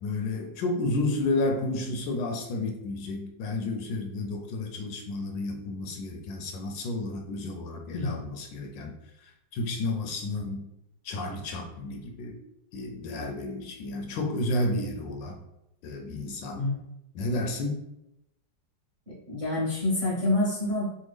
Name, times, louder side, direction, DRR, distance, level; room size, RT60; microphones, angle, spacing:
voice 1, 0.0-8.9 9.2-10.6 11.0-12.4 12.7-15.4 15.8-16.6 17.1-17.8, left 2 dB, 80° left, 2 dB, 1.2 m, -31 dB
voice 2, 19.1-21.1, left 2 dB, 25° right, -8 dB, 0.8 m, -27 dB
3.4 x 2.3 x 3.2 m, 0.87 s
omnidirectional pair, 2.0 m